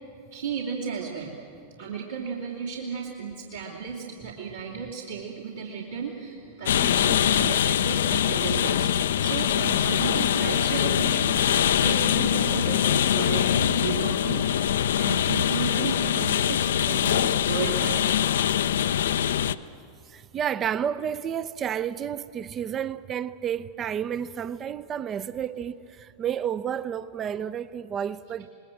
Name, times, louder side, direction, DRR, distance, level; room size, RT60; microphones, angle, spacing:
voice 1, 0.3-1.4 1.8-8.9 9.2-18.0, right 6 dB, 70° right, 3.0 m, -34 dB
sound 1, 6.7-19.6, left 10 dB, 60° left, 0.6 m, -23 dB
voice 2, 20.1-28.5, right 9 dB, 25° right, 0.6 m, -31 dB
28.0 x 20.5 x 7.8 m
figure-of-eight pair, 90°, 0 cm